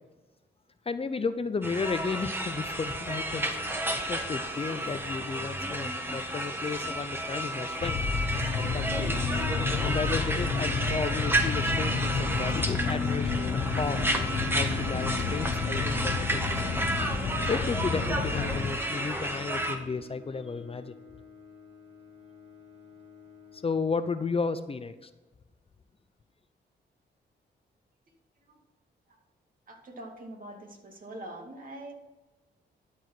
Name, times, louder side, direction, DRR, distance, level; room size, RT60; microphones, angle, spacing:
voice 1, 0.9-3.6 4.1-8.0 8.6-9.1 9.8-14.0 14.5-16.6 17.5-21.0 23.5-25.1, left 4 dB, 30° left, 11 dB, 0.6 m, -33 dB
sound 1, 1.6-19.8, right 1 dB, 10° right, 1.4 m, -32 dB
sound 2, 7.8-18.7, left 5 dB, 65° left, 1.1 m, -30 dB
Bowed string instrument, 17.8-24.5, left 6 dB, 30° right, 2.3 m, -52 dB
voice 2, 29.7-31.9, right 1 dB, 50° right, 2 dB, 2.3 m, -43 dB
12.0 x 4.8 x 5.9 m, 1.1 s
cardioid pair, 85°, 19 cm